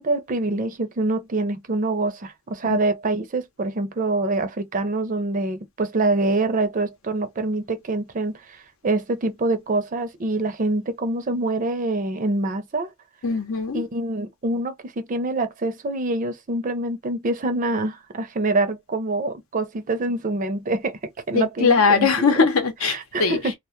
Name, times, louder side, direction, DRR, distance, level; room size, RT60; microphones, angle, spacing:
voice 1, 0.0-12.9 13.7-21.0 21.3-22.1 22.9-23.5, right 2 dB, 40° right, 0.5 m, -25 dB
voice 2, 13.2-13.8 21.3-23.4, left 5 dB, 75° left, 0.7 m, -20 dB
2.2 x 2.0 x 2.8 m
head